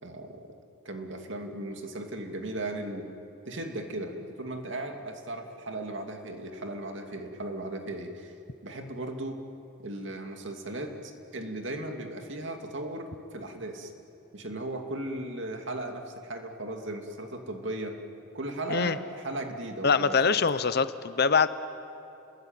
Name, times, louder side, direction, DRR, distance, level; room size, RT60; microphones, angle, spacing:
voice 1, 0.0-0.4 0.8-3.1 3.5-8.3 8.6-9.4 9.8-13.9 14.3-18.0 18.3-20.4, right 1 dB, 60° right, 4 dB, 2.6 m, -36 dB
voice 2, 19.8-21.5, left 5 dB, 50° left, 13 dB, 0.9 m, -24 dB
29.5 x 21.5 x 9.1 m, 2.7 s
head